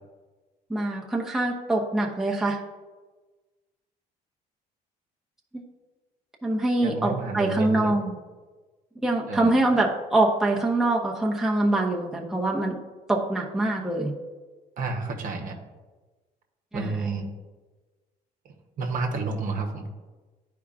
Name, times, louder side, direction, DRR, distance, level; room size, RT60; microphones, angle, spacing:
voice 1, 0.7-2.6 6.4-8.2 9.0-12.8 13.1-14.1 16.7-17.0, right 2 dB, 5° right, -2 dB, 0.8 m, -24 dB
voice 2, 6.8-8.0 9.3-9.5 14.8-15.6 16.7-17.3 18.8-19.9, right 4 dB, 55° right, 2 dB, 1.0 m, -30 dB
10.5 x 4.8 x 2.4 m, 1.3 s
cardioid pair, 110°, 17 cm